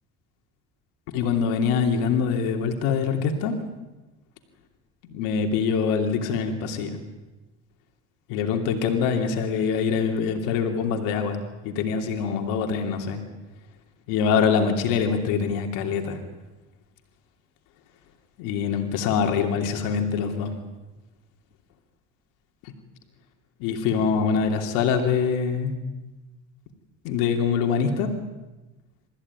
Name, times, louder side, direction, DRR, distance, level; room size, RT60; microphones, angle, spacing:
voice 1, 1.1-3.5 5.1-7.0 8.3-11.4 11.6-13.2 14.1-16.2 18.4-20.5 23.6-25.7 27.0-28.1, left 6 dB, 85° left, 4 dB, 2.9 m, -24 dB
29.0 x 15.0 x 9.7 m, 1.1 s
cardioid pair, 130°, 31 cm